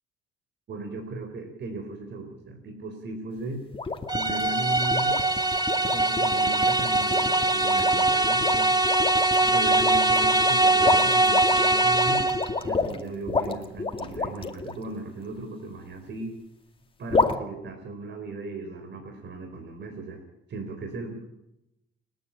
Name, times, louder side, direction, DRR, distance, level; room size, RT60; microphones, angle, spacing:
voice 1, 0.7-3.6 4.1-5.2 5.9-8.7 9.4-12.3 12.6-16.4 17.0-20.2 20.5-21.2, right 2 dB, 60° right, 4 dB, 4.0 m, -37 dB
sound 1, 3.7-14.7 17.1-17.4, left 4 dB, 25° left, 2.3 m, -29 dB
sound 2, 4.1-12.6, right 2 dB, 20° right, 1.6 m, -22 dB
29.5 x 10.0 x 8.7 m, 0.86 s
cardioid pair, 90°, 20 cm